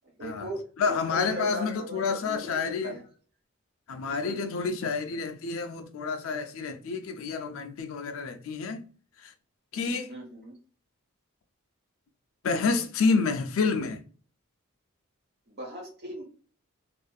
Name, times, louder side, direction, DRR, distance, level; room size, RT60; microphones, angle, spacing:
voice 1, 0.0-3.0 4.1-4.4 10.1-10.5 15.5-16.2, right 1 dB, 50° right, 1.1 m, -39 dB
voice 2, 0.8-2.9 3.9-8.8 9.2-9.3 9.7-10.1 12.4-14.0, left 4 dB, 70° left, 0.4 m, -29 dB
2.5 x 2.4 x 2.2 m
head